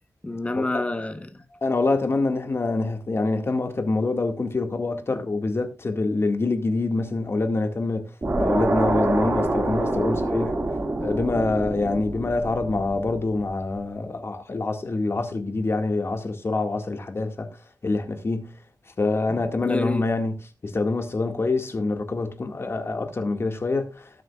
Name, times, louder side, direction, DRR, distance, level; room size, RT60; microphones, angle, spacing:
voice 1, 0.2-1.6 19.3-20.0, left 2 dB, 20° left, 1.1 m, -29 dB
voice 2, 1.6-8.1 8.4-10.6 11.0-17.5 17.8-18.5 19.0-20.3 20.6-24.0, left 3 dB, 40° left, 1.9 m, -25 dB
sound 1, 8.2-13.5, right 2 dB, 35° right, 2.1 m, -26 dB
19.0 x 7.4 x 2.4 m
wide cardioid pair, 145°, 6 cm